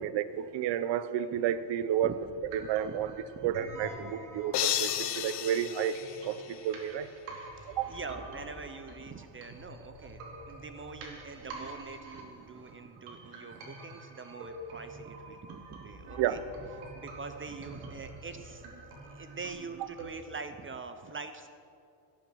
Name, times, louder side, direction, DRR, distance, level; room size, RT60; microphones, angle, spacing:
voice 1, 0.1-2.1 2.5-3.1 3.4-6.0 6.2-6.4 6.6-7.1 7.8-7.9 16.2-16.4, right 10 dB, 60° right, 14 dB, 0.7 m, -31 dB
sound 1, 2.1-20.1, right 2 dB, 90° right, 2.7 m, -47 dB
voice 2, 2.6-3.9 7.6-16.4 16.9-18.7 19.1-21.5, right 4 dB, 25° right, 9 dB, 0.6 m, -44 dB
sound 2, 4.5-6.9, left 12 dB, 55° left, 0.8 m, -33 dB
17.0 x 7.4 x 6.2 m, 2.5 s
cardioid pair, 110°, 49 cm